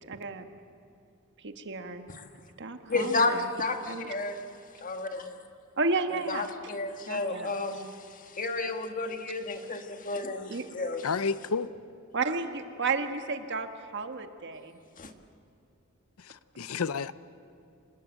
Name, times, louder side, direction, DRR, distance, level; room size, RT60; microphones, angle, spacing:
voice 1, 0.0-0.5 1.4-2.0 2.6-3.5 3.8-4.1 5.8-6.5 7.1-7.5 10.5-10.6 12.1-14.8, right 3 dB, 55° right, 1.5 m, -32 dB
voice 2, 2.9-4.4 4.8-5.4 6.3-11.0 15.0-15.1, left 3 dB, 40° left, 1.7 m, -32 dB
voice 3, 11.0-11.7 16.2-17.1, left 5 dB, 75° left, 0.6 m, -31 dB
26.5 x 19.5 x 9.0 m
head